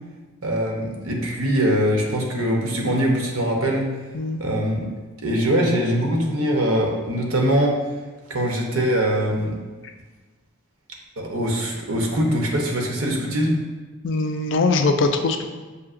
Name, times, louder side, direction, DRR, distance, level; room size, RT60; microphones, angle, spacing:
voice 1, 0.4-3.9 4.4-4.8 5.2-7.8 8.3-9.6 11.2-13.6, equal, 80° right, 0 dB, 0.8 m, -22 dB
voice 2, 14.0-15.5, left 3 dB, 60° left, 6 dB, 0.4 m, -21 dB
6.6 x 2.7 x 2.5 m, 1.3 s
head